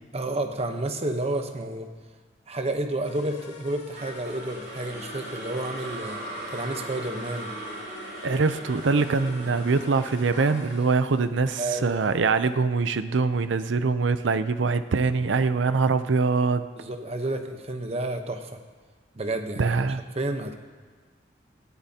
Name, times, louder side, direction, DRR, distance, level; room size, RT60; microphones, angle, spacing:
voice 1, 0.1-1.9 2.5-6.2 6.5-7.5 11.5-12.2 16.8-18.6 19.2-19.6 20.1-20.5, right 2 dB, 35° right, 6 dB, 0.9 m, -30 dB
sound 1, 3.0-11.3, left 1 dB, 75° left, 2.3 m, -46 dB
sound 2, 4.0-12.1, right 1 dB, 60° right, 4.5 m, -39 dB
voice 2, 8.2-16.7 19.6-20.0, right 4 dB, 90° right, 12 dB, 0.6 m, -23 dB
17.0 x 13.5 x 2.8 m, 1.5 s
head